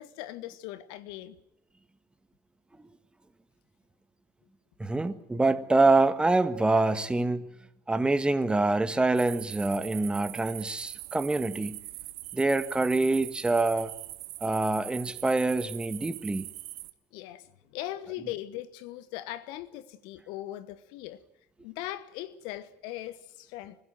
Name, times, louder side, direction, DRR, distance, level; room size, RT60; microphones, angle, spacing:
voice 1, 0.0-1.4 17.1-21.2 21.6-23.8, left 14 dB, 60° left, 1.3 m, -39 dB
voice 2, 4.8-7.5 7.9-11.8 12.3-13.9 14.4-16.5, right 2 dB, 10° right, 1.7 m, -25 dB
sound 1, 9.1-16.9, right 16 dB, 70° right, 1.3 m, -42 dB
25.5 x 16.5 x 9.2 m
hypercardioid pair, 75°, 9 cm